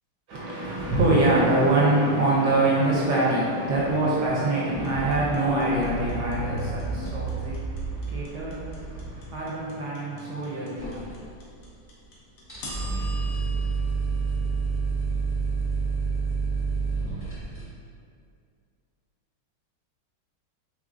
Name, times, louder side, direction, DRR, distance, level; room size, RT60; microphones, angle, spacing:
voice 1, 0.3-11.2, right 2 dB, 65° right, -5 dB, 1.1 m, -24 dB
sound 1, 4.7-9.4, right 2 dB, 65° left, 1.5 m, -33 dB
sound 2, 4.8-15.0, left 1 dB, 85° left, 1.7 m, -43 dB
sound 3, 10.8-11.8 12.0-12.1 12.4-17.6, right 4 dB, 15° left, 0.8 m, -28 dB
4.9 x 3.8 x 2.4 m, 2.3 s
omnidirectional pair, 2.3 m